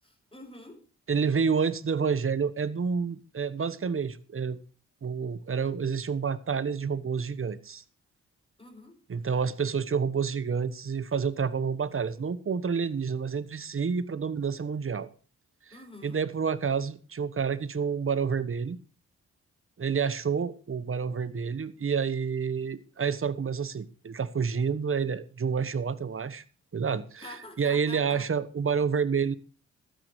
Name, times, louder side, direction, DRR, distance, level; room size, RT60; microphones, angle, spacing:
voice 1, 0.0-0.8 8.6-9.0 15.7-16.2 27.2-28.3, left 1 dB, 15° left, 7.3 m, -46 dB
voice 2, 1.1-4.6 5.0-7.8 9.1-15.1 16.0-18.8 19.8-26.4 26.7-27.2 27.6-29.3, right 6 dB, 40° right, 1.2 m, -29 dB
15.5 x 13.0 x 3.2 m
hypercardioid pair, 40°, 34 cm